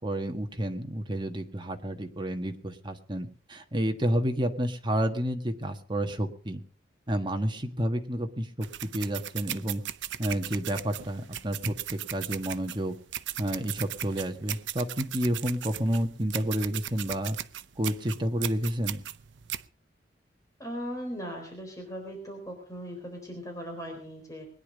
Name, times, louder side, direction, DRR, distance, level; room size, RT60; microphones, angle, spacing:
voice 1, 0.0-6.6 7.1-9.8 10.2-12.9 13.4-17.4 17.8-19.0, equal, 25° right, 5 dB, 1.6 m, -30 dB
sound 1, 8.6-19.7, right 12 dB, 80° right, 0.6 m, -37 dB
voice 2, 20.6-24.5, equal, 20° left, 2 dB, 4.0 m, -38 dB
21.0 x 10.0 x 5.2 m, 0.43 s
head